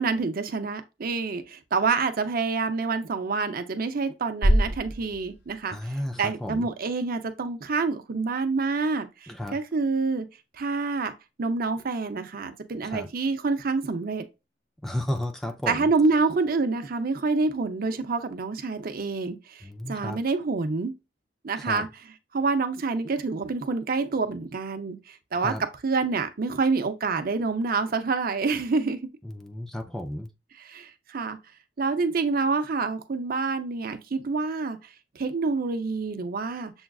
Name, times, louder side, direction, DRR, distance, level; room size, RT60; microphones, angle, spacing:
voice 1, 0.0-10.3 10.6-11.1 11.4-14.2 15.7-20.9 21.4-25.5 25.8-29.0 30.6-31.4 31.8-34.8 35.2-36.7, right 4 dB, 55° right, 0.6 m, -27 dB
sound 1, 4.4-6.5, equal, 80° left, 1.0 m, -26 dB
voice 2, 5.7-6.7 9.3-9.6 12.8-13.1 14.8-15.9 19.6-20.2 21.6-21.8 25.4-25.6 29.2-30.3, left 1 dB, ahead, 0.4 m, -33 dB
7.0 x 2.4 x 2.3 m
head